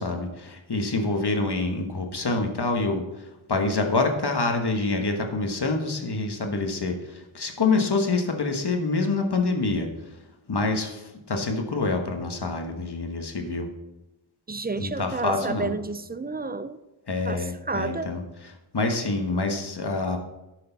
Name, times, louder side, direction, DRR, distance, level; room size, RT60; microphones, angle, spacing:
voice 1, 0.0-3.0 3.5-9.9 10.5-13.7 14.8-15.7 17.1-20.2, left 3 dB, 50° left, 4 dB, 1.3 m, -26 dB
voice 2, 14.5-16.8 17.2-18.1, right 3 dB, 20° right, 13 dB, 0.3 m, -31 dB
11.5 x 6.5 x 4.0 m, 0.98 s
wide cardioid pair, 85°, 50 cm